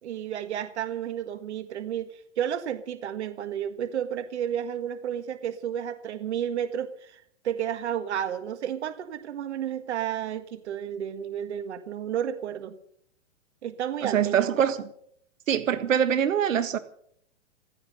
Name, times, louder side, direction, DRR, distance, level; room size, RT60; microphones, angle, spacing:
voice 1, 0.0-12.8 13.6-14.6, right 9 dB, 60° right, 1.7 m, -32 dB
voice 2, 14.0-14.9 15.5-16.8, right 9 dB, 85° right, 1.7 m, -24 dB
16.0 x 13.5 x 6.6 m
hypercardioid pair, 175°, 38 cm